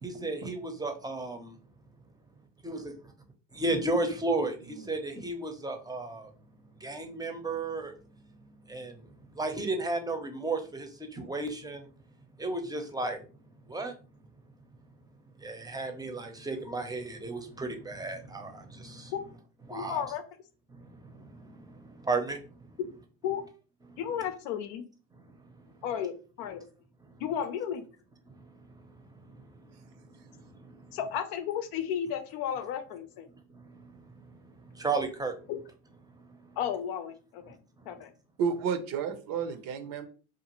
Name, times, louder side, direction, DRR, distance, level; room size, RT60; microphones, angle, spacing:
voice 1, 0.0-1.6 2.6-2.8 3.6-6.3 6.8-7.9 8.7-11.9 12.4-13.2 13.7-13.9 15.4-19.1 19.7-20.0 20.7-22.4 23.9-24.0 25.3-25.4 27.1-27.2 28.3-28.4 28.9-29.7 30.3-31.0 33.5-34.4 34.7-35.4, right 2 dB, 10° right, 5 dB, 0.6 m, -34 dB
voice 2, 19.7-20.2 22.8-22.9 23.2-23.4 24.0-24.8 25.8-26.6 27.2-27.8 30.9-33.3 35.5-35.6 36.6-37.5 37.9-38.1, left 9 dB, 75° left, 8 dB, 0.6 m, -33 dB
voice 3, 38.4-40.1, right 6 dB, 60° right, 8 dB, 0.6 m, -32 dB
2.5 x 2.5 x 2.9 m, 0.37 s
hypercardioid pair, 70°, 38 cm